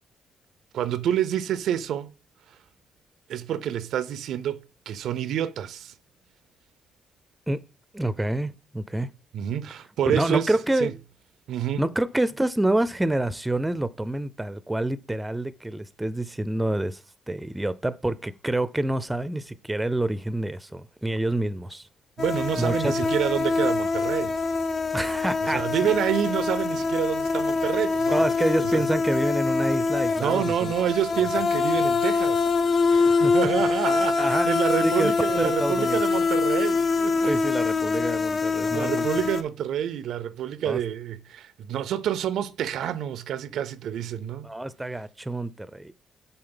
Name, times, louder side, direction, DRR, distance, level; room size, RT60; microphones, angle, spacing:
voice 1, 0.7-2.1 3.3-5.9 9.3-10.9 11.5-11.8 22.2-24.4 25.4-28.2 28.6-28.8 30.2-37.3 38.7-44.5, right 10 dB, 75° right, 0.4 m, -28 dB
voice 2, 7.9-9.1 10.1-11.0 11.8-17.0 17.3-21.9 22.6-22.9 24.9-25.7 28.1-30.7 33.1-33.3 34.2-34.5 34.8-35.1 35.4-36.0 37.3-39.1 40.7-40.8 44.4-45.9, right 1 dB, 10° right, 0.5 m, -27 dB
sound 1, 22.2-39.4, left 4 dB, 50° left, 0.6 m, -24 dB
7.7 x 4.2 x 3.8 m
cardioid pair, 90°, 0 cm